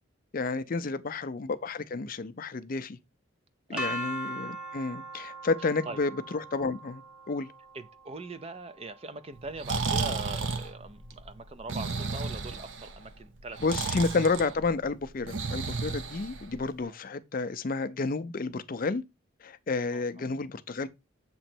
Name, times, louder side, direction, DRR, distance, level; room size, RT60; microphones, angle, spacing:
voice 1, 0.3-3.0 3.7-7.5 13.6-19.0 19.4-20.9, left 3 dB, 40° left, 0.5 m, -31 dB
sound 1, 3.8-9.7, right 1 dB, 5° right, 1.2 m, -40 dB
voice 2, 5.6-6.0 7.7-13.7 16.9-17.0 19.9-20.3, right 3 dB, 30° right, 0.5 m, -42 dB
Breathing, 9.4-16.8, right 4 dB, 60° right, 0.7 m, -33 dB
7.6 x 3.0 x 4.3 m
head